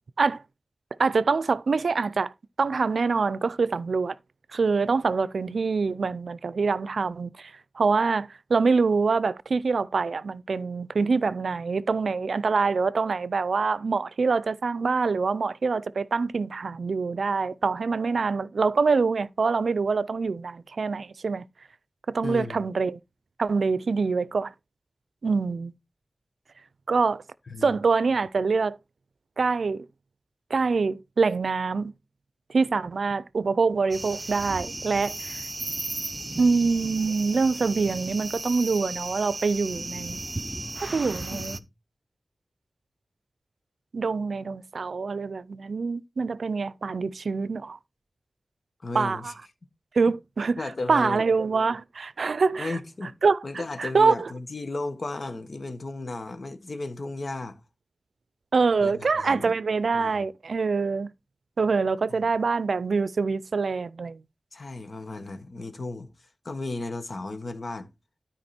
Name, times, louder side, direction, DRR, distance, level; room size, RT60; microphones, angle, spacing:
voice 1, 1.0-2.3 2.6-4.2 4.5-7.5 7.8-21.4 22.1-23.0 23.4-24.5 25.2-25.7 26.9-27.2 27.6-28.8 29.4-29.8 30.5-31.9 32.5-35.4 36.4-40.2 40.8-41.6 43.9-47.8 48.9-49.3 49.9-50.6 50.9-52.8 53.2-53.4 53.8-54.2 58.5-61.1 61.6-64.2, right 4 dB, 80° right, 0.4 m, -25 dB
voice 2, 22.2-22.6 27.5-27.8 41.3-41.5 48.8-49.3 50.6-51.2 52.6-53.1 53.4-57.6 58.8-59.6 59.9-60.3 62.1-62.2 64.5-67.9, left 2 dB, 55° left, 1.5 m, -35 dB
sound 1, 33.9-41.6, right 2 dB, 30° right, 0.7 m, -35 dB
12.5 x 4.9 x 4.3 m
wide cardioid pair, 100°, 0 cm